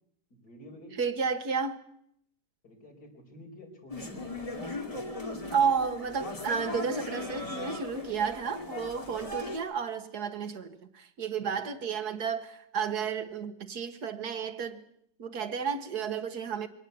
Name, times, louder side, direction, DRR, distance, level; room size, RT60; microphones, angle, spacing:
voice 1, 0.3-1.0 2.6-4.2 11.5-11.6, left 1 dB, 65° left, 5.4 m, -49 dB
voice 2, 1.0-1.8 5.5-14.8 15.2-16.7, right 6 dB, 65° right, 2.0 m, -32 dB
sound 1, 3.9-9.6, left 2 dB, 20° left, 2.4 m, -38 dB
22.5 x 18.5 x 8.2 m
omnidirectional pair, 1.8 m